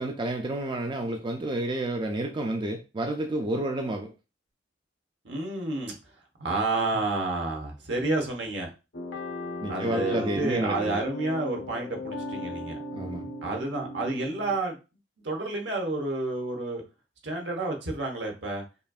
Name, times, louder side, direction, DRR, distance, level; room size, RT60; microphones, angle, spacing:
voice 1, 0.0-4.1 9.6-10.9 12.9-13.3, right 1 dB, 25° right, 0.4 m, -30 dB
voice 2, 5.2-5.9 6.4-8.7 9.7-12.8 13.4-14.8 15.2-16.8 17.2-18.6, right 2 dB, 70° right, 1.1 m, -30 dB
sound 1, 8.9-14.6, left 1 dB, 80° left, 1.0 m, -36 dB
5.3 x 2.6 x 2.4 m
head